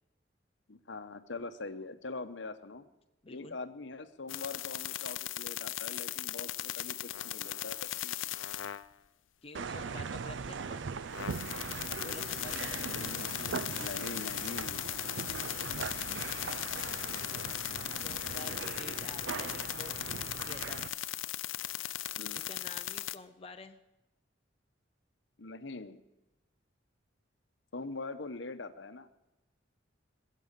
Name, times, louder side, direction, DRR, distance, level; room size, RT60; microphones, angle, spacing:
voice 1, 0.7-2.9 3.3-8.3 12.9-14.9 22.2-22.4 25.4-26.0 27.7-29.1, left 3 dB, 65° left, 10 dB, 0.9 m, -43 dB
voice 2, 3.2-3.6 9.4-10.9 12.0-12.7 17.9-20.9 22.3-23.8, left 3 dB, 30° left, 6 dB, 0.6 m, -49 dB
sound 1, 4.3-8.9 10.8-10.9 11.1-23.2, left 14 dB, 85° left, 0.5 m, -38 dB
sound 2, 9.5-20.9, right 5 dB, 70° right, 0.5 m, -40 dB
21.5 x 7.6 x 6.7 m, 0.98 s
head